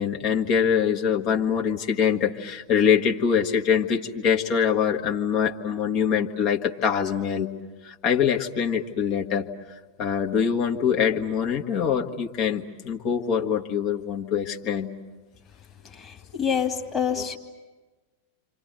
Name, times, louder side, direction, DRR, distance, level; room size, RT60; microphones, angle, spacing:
voice 1, 0.0-7.5 7.8-9.5 10.0-14.9 17.2-17.3, left 7 dB, 40° left, 1 dB, 1.6 m, -24 dB
voice 2, 16.0-17.4, left 7 dB, 20° left, 1 dB, 2.6 m, -27 dB
29.5 x 26.0 x 7.9 m, 1.3 s
figure-of-eight pair, 90°, 0 cm